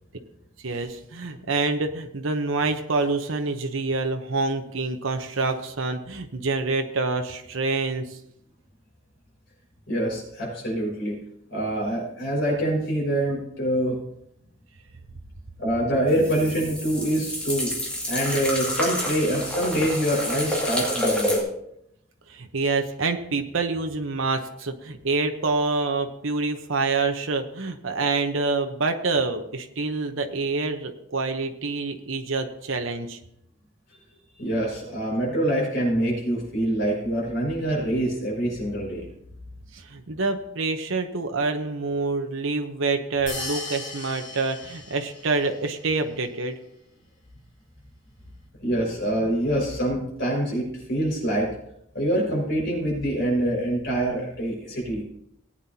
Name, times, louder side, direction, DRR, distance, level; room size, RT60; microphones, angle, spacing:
voice 1, 0.6-8.2 22.3-33.2 39.7-46.6, right 3 dB, 70° right, 5 dB, 0.9 m, -27 dB
voice 2, 9.9-11.2 11.5-14.0 15.6-17.7 18.1-21.4 34.4-39.1 48.6-51.5 51.9-55.0, right 1 dB, 55° left, -2 dB, 5.4 m, -25 dB
sound 1, 16.1-21.4, left 1 dB, 5° left, 2.3 m, -28 dB
sound 2, 43.3-45.5, left 3 dB, 35° left, 3.7 m, -36 dB
18.5 x 8.9 x 2.9 m, 0.78 s
head